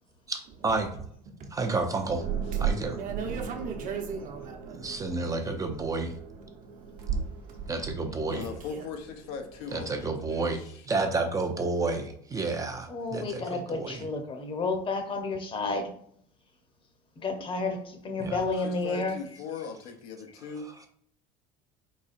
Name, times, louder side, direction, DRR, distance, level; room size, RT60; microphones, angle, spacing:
voice 1, 0.3-0.9 1.5-2.2 2.6-3.0 4.8-6.1 7.7-8.4 9.7-10.6 10.9-14.0 18.2-18.4, right 3 dB, 20° right, 0.6 m, -30 dB
sound 1, 2.1-10.1, right 7 dB, 85° right, 1.0 m, -36 dB
voice 2, 3.0-5.2 8.3-8.8, right 6 dB, 50° right, 1.0 m, -38 dB
voice 3, 8.3-10.9 18.6-20.7, left 5 dB, 85° left, 0.9 m, -39 dB
voice 4, 12.9-15.9 17.2-19.2, left 3 dB, 30° left, 0.9 m, -31 dB
4.5 x 4.1 x 2.5 m
supercardioid pair, 120°, 18 cm